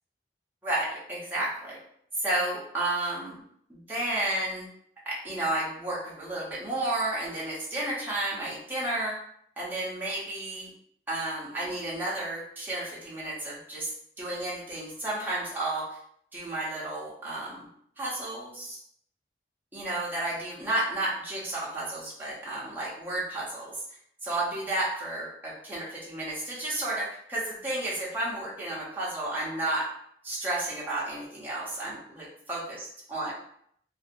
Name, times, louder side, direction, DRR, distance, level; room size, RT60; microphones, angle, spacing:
voice 1, 0.6-1.8 2.2-3.4 3.7-4.7 5.0-9.2 9.6-10.7 11.1-13.9 14.2-16.0 16.3-17.7 18.0-18.8 19.7-23.7 24.2-29.9 30.2-32.8 33.1-33.3, right 1 dB, 10° right, -8 dB, 0.7 m, -32 dB
2.6 x 2.4 x 2.6 m, 0.68 s
head